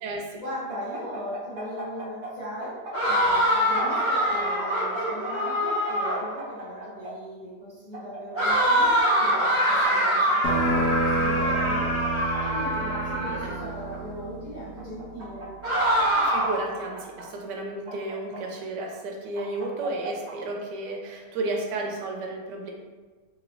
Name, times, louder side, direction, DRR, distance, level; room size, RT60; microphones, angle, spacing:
voice 1, 0.3-15.5, equal, 40° left, -11 dB, 0.6 m, -38 dB
sound 1, 0.7-2.3 2.6-4.5 4.9-7.1 7.9-9.1 9.3-9.4 9.8-10.8 11.3-12.4 13.0-14.0 14.8-15.7 16.0-17.2 17.9-18.8 19.4-20.3, right 3 dB, 55° right, 0.8 m, -38 dB
sound 2, 2.9-6.3 8.4-13.6 15.6-16.7, equal, 10° left, 1.1 m, -24 dB
sound 3, 10.4-15.6, right 2 dB, 65° left, 1.0 m, -30 dB
voice 2, 13.2-13.6 16.1-22.7, right 2 dB, 80° right, 1 dB, 1.2 m, -33 dB
3.1 x 3.0 x 2.6 m, 1.3 s
omnidirectional pair, 1.8 m